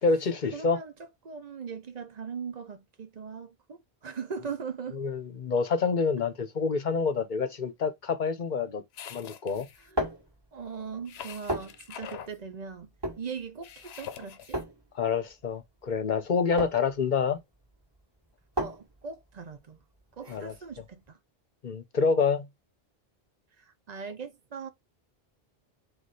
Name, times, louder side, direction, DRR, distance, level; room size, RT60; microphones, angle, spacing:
voice 1, 0.0-0.8 4.9-8.8 9.1-9.7 14.9-17.4 20.3-20.6 21.6-22.5, left 5 dB, 50° left, 0.8 m, -27 dB
voice 2, 0.5-5.0 9.9-10.0 10.5-12.9 13.2-14.6 18.6-19.8 20.2-21.2 23.6-24.7, right 6 dB, 50° right, 0.7 m, -40 dB
sound 1, 8.9-9.9 11.1-12.3 13.6-14.6, left 9 dB, 80° left, 0.8 m, -44 dB
sound 2, 9.7-21.1, equal, 25° right, 1.3 m, -37 dB
4.1 x 2.4 x 4.7 m
omnidirectional pair, 1.0 m